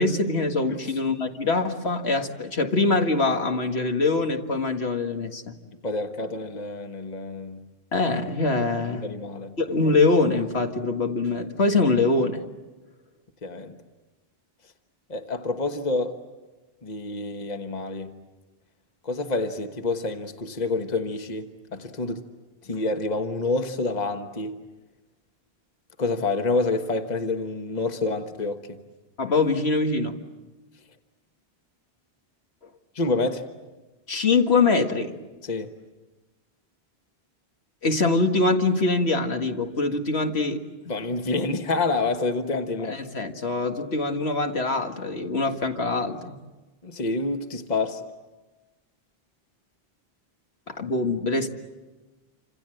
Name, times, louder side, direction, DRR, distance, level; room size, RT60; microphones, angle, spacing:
voice 1, 0.0-5.5 7.9-9.0 9.6-12.4 29.2-30.2 34.1-35.1 37.8-40.6 42.9-46.4 50.7-51.5, left 3 dB, 80° left, 2.1 m, -23 dB
voice 2, 5.8-7.6 8.9-9.5 13.4-13.7 15.1-16.2 16.8-18.1 19.0-22.2 22.6-24.6 26.0-28.8 32.9-33.4 35.4-35.7 40.9-43.0 46.8-48.0, left 3 dB, 40° left, 1.4 m, -28 dB
28.5 x 27.0 x 7.8 m
omnidirectional pair, 1.1 m